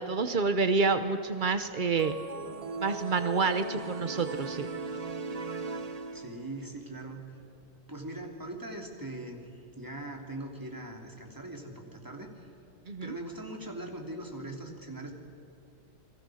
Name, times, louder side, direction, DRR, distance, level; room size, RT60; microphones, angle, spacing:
voice 1, 0.0-2.2 2.8-4.7 12.9-13.1, right 4 dB, 60° right, 9 dB, 0.5 m, -28 dB
sound 1, 2.0-6.6, right 4 dB, 30° right, 0.8 m, -38 dB
voice 2, 6.1-7.2 7.9-9.5 9.8-12.4 13.0-15.1, right 1 dB, 10° right, 1 dB, 3.0 m, -41 dB
29.5 x 22.5 x 6.4 m, 2.7 s
omnidirectional pair, 2.2 m